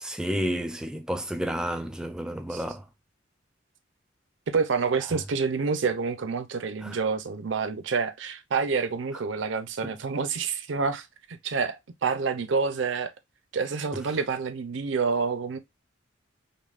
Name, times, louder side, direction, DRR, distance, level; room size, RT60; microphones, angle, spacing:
voice 1, 0.0-2.8 6.8-7.0 9.8-9.9, equal, 5° right, 0.3 m, -31 dB
voice 2, 4.5-13.1 13.5-15.6, right 5 dB, 75° right, 0.6 m, -28 dB
5.3 x 2.1 x 2.4 m
head